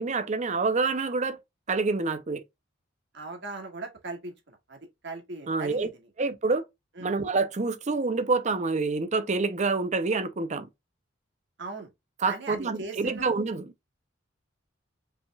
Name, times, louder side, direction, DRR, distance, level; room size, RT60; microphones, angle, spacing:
voice 1, 0.0-1.4 1.7-2.4 5.5-5.9 6.2-6.6 7.0-10.7 12.2-13.7, right 3 dB, 35° right, 0.6 m, -27 dB
voice 2, 3.1-4.8 5.0-5.9 7.0-7.1 11.6-11.9 12.3-13.2, right 3 dB, 65° right, 1.6 m, -39 dB
5.3 x 3.4 x 2.3 m
head